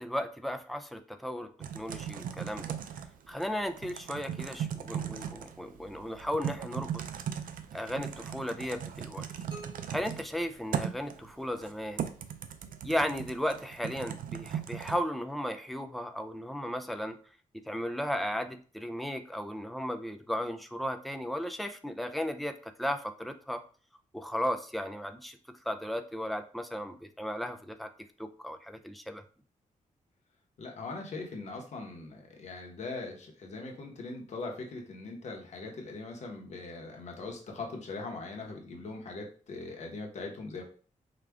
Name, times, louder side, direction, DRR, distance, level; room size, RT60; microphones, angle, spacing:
voice 1, 0.0-2.8 3.3-7.0 7.7-9.2 9.9-12.1 12.8-17.2 17.7-23.6 24.1-25.4 25.6-27.9 28.2-29.2, equal, ahead, 6 dB, 0.4 m, -35 dB
Typing, 1.6-15.0, right 9 dB, 85° right, 0.5 m, -38 dB
sound 1, 9.5-11.4, right 2 dB, 40° right, 1.0 m, -52 dB
voice 2, 30.6-40.6, left 3 dB, 55° left, 1 dB, 1.1 m, -41 dB
4.9 x 2.4 x 3.5 m, 0.41 s
wide cardioid pair, 155°, 14 cm